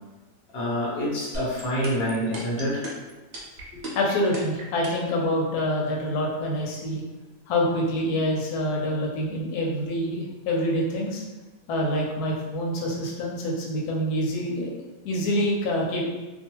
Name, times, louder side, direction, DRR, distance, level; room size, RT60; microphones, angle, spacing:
voice 1, 0.5-2.8, equal, 50° left, -6 dB, 1.0 m, -27 dB
sound 1, 1.3-5.1, right 2 dB, 55° right, 0.7 m, -35 dB
voice 2, 3.9-7.0 7.5-11.2 11.7-14.7 15.0-16.0, left 1 dB, 90° left, -2 dB, 1.1 m, -26 dB
2.6 x 2.3 x 2.9 m, 1.2 s
omnidirectional pair, 1.6 m